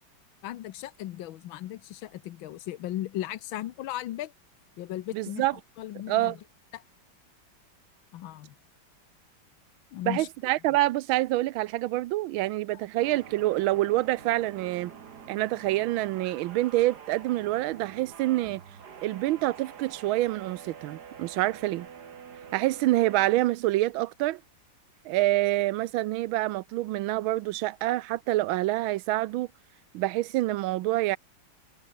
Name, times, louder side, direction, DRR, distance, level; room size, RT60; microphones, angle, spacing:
voice 1, 0.4-4.3 4.8-6.4 6.7-6.8 8.1-8.5 9.9-10.3 12.7-12.8, left 13 dB, 80° left, 1.6 m, -37 dB
voice 2, 5.1-5.5 6.1-6.4 10.0-14.9 15.3-18.6 19.0-21.9 22.5-24.4 25.0-29.5 29.9-31.2, right 17 dB, 90° right, 1.4 m, -26 dB
sound 1, 13.0-23.3, right 7 dB, 55° right, 2.1 m, -46 dB
omnidirectional pair, 2.2 m